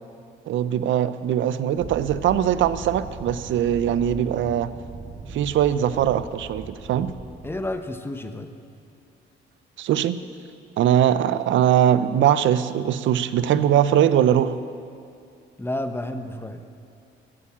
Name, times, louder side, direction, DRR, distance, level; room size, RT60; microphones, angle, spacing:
voice 1, 0.5-4.7 5.3-7.1 9.8-10.2 10.8-14.6, right 10 dB, 75° right, 14 dB, 0.6 m, -21 dB
sound 1, 1.8-7.8, right 3 dB, 55° right, 2.0 m, -39 dB
voice 2, 7.4-8.5 15.6-16.6, left 1 dB, 10° left, 8 dB, 1.0 m, -30 dB
16.0 x 8.5 x 7.4 m, 2.4 s
cardioid pair, 90°, 20 cm